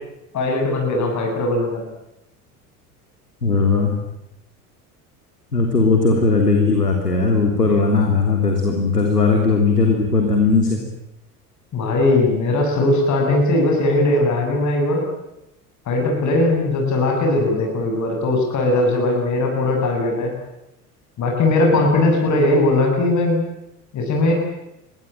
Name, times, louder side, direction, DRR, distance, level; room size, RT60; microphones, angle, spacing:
voice 1, 0.3-1.8 11.7-15.0 15.9-20.3 21.2-23.4 23.9-24.3, left 2 dB, 40° left, 1 dB, 8.0 m, -19 dB
voice 2, 3.4-3.9 5.5-10.8, left 4 dB, 85° left, 3 dB, 3.4 m, -18 dB
27.5 x 21.5 x 9.1 m, 0.88 s
figure-of-eight pair, 70°, 46 cm